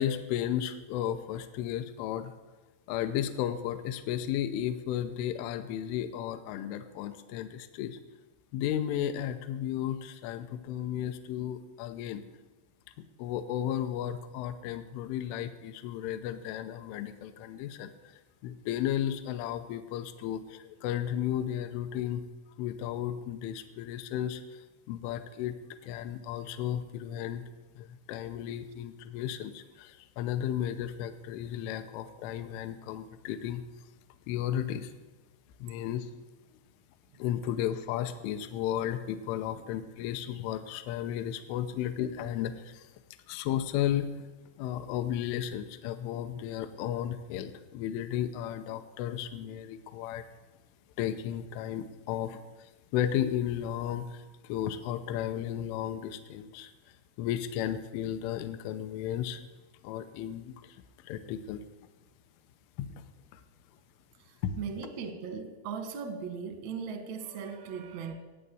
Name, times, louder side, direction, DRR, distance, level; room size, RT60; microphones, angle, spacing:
voice 1, 0.0-2.3 2.9-8.0 8.5-12.2 13.2-22.2 22.6-25.6 25.8-27.4 27.8-33.6 34.3-34.9 35.6-36.1 37.2-42.9 43.3-44.3 44.6-50.2 51.0-59.4 59.8-61.6 62.8-63.0 63.3-63.4 64.4-64.5, left 10 dB, 85° left, 10 dB, 3.1 m, -34 dB
voice 2, 64.2-68.1, right 6 dB, 75° right, 7 dB, 1.6 m, -39 dB
15.5 x 9.0 x 8.4 m, 1.2 s
omnidirectional pair, 5.8 m